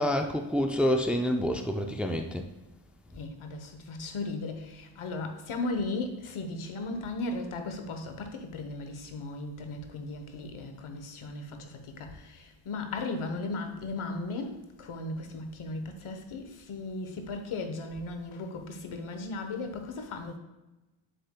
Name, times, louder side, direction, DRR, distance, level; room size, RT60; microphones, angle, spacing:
voice 1, 0.0-2.4, equal, 5° right, 0.4 m, -27 dB
voice 2, 3.1-20.4, left 2 dB, 80° left, 1.1 m, -36 dB
7.7 x 6.6 x 2.2 m
wide cardioid pair, 130°, 49 cm